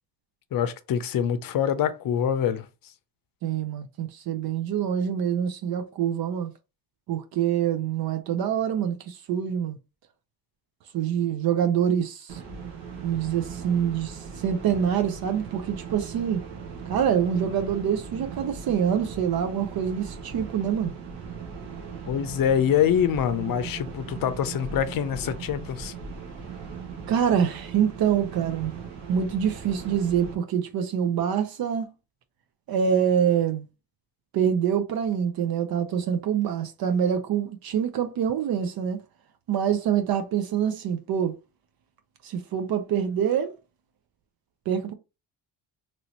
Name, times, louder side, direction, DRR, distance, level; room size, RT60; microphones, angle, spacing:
voice 1, 0.5-2.7 22.1-25.9, left 9 dB, 55° left, 0.6 m, -25 dB
voice 2, 3.4-6.5 7.1-9.8 10.9-12.4 13.0-16.5 16.9-20.9 27.1-28.7 29.1-31.9 32.7-33.7 34.3-39.0 39.5-41.4 42.2-43.5 44.7-44.9, right 8 dB, 60° right, 0.5 m, -25 dB
sound 1, 12.3-30.3, right 6 dB, 80° right, 1.1 m, -39 dB
3.0 x 2.6 x 2.9 m
cardioid pair, 90°, 41 cm